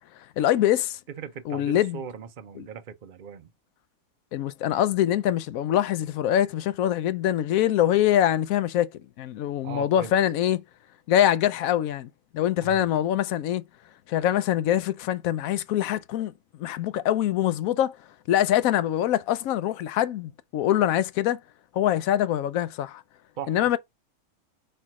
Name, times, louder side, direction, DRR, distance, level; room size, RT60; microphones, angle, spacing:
voice 1, 0.4-1.0 1.5-2.0 2.6-2.7 4.3-8.9 9.2-10.6 11.1-12.1 12.3-13.6 14.1-16.3 16.6-18.0 18.3-21.4 21.7-23.0 23.5-23.8, left 11 dB, 70° left, 1.0 m, -24 dB
voice 2, 1.1-3.5 9.6-10.1 12.6-12.9 23.4-23.8, right 7 dB, 50° right, 0.6 m, -39 dB
4.5 x 4.3 x 4.8 m
omnidirectional pair, 1.7 m